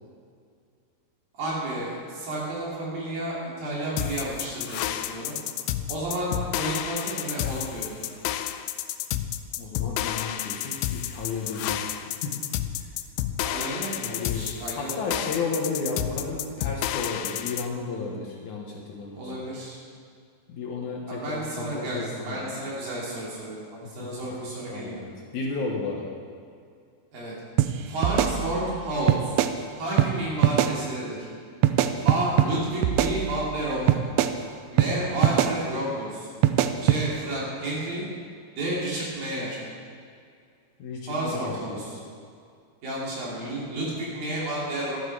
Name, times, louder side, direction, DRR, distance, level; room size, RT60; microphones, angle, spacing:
voice 1, 1.4-5.3 5.9-8.2 13.4-15.1 19.1-19.8 21.1-25.0 27.1-27.3 27.9-29.4 29.8-31.3 32.0-34.0 34.7-36.3 36.8-38.1 38.6-39.6 41.1-42.0 42.8-45.0, right 1 dB, 65° right, -6 dB, 4.6 m, -31 dB
sound 1, 4.0-17.7, left 12 dB, 85° left, 2.4 m, -31 dB
voice 2, 9.6-12.4 12.8-12.9 14.0-19.3 20.5-22.5 23.8-24.4 24.7-26.1 40.8-41.8, left 4 dB, 65° left, -1 dB, 2.2 m, -33 dB
sound 2, 27.6-27.7 28.0-28.8 29.1-29.5 30.0-30.1 30.4-30.7 31.6-32.5 32.8-33.6 33.9-34.3 34.8-34.9 35.2-35.5 36.4-37.0, right 12 dB, 85° right, 2.6 m, -22 dB
12.0 x 12.0 x 4.8 m, 2.2 s
omnidirectional pair, 4.6 m